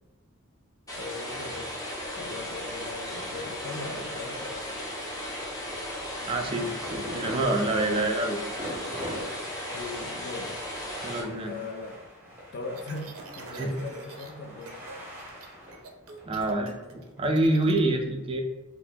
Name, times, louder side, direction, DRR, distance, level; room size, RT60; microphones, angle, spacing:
sound 1, 0.9-11.2, left 1 dB, 15° left, 0.8 m, -36 dB
voice 1, 1.0-1.7 2.2-4.5 9.7-10.5 11.3-12.0 12.5-14.8, left 3 dB, 50° left, 3 dB, 0.4 m, -39 dB
sound 2, 6.1-17.6, equal, 10° right, 0.8 m, -42 dB
voice 2, 6.3-8.4 11.0-11.5 13.5-13.8 16.3-18.4, right 2 dB, 25° right, 3 dB, 0.3 m, -27 dB
sound 3, 12.7-14.3 14.6-14.9 15.2-17.8, right 4 dB, 85° right, 0.5 m, -46 dB
3.8 x 2.0 x 2.8 m, 1.2 s
head